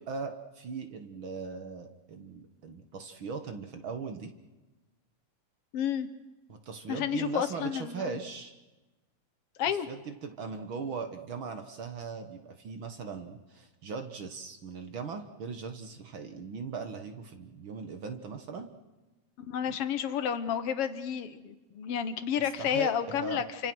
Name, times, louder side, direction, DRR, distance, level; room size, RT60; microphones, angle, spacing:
voice 1, 0.0-4.3 6.5-8.5 9.9-18.7 19.7-19.8 22.6-22.9 23.2-23.4, right 5 dB, 50° right, 7 dB, 1.8 m, -39 dB
voice 2, 5.7-6.1 6.9-8.2 9.6-9.9 19.5-23.7, left 9 dB, 60° left, 11 dB, 1.9 m, -31 dB
28.5 x 25.5 x 6.2 m, 1.1 s
omnidirectional pair, 3.3 m